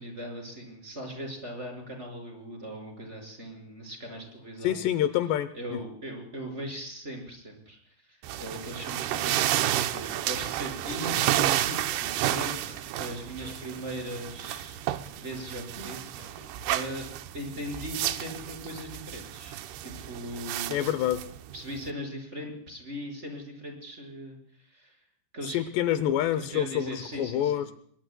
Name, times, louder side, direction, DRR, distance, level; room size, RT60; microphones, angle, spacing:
voice 1, 0.0-4.8 5.5-14.8 15.2-17.1 17.3-20.9 21.5-25.0 25.3-25.6 26.3-27.6, equal, 15° right, 2 dB, 5.4 m, -39 dB
voice 2, 4.6-5.8 20.7-21.2 25.5-27.7, left 11 dB, 80° left, 13 dB, 2.9 m, -27 dB
sound 1, 8.2-21.9, right 13 dB, 75° right, 2.7 m, -31 dB
sound 2, 10.0-16.8 17.1-17.2, equal, 35° right, 6.5 m, -53 dB
25.5 x 22.5 x 2.3 m, 0.62 s
omnidirectional pair, 5.0 m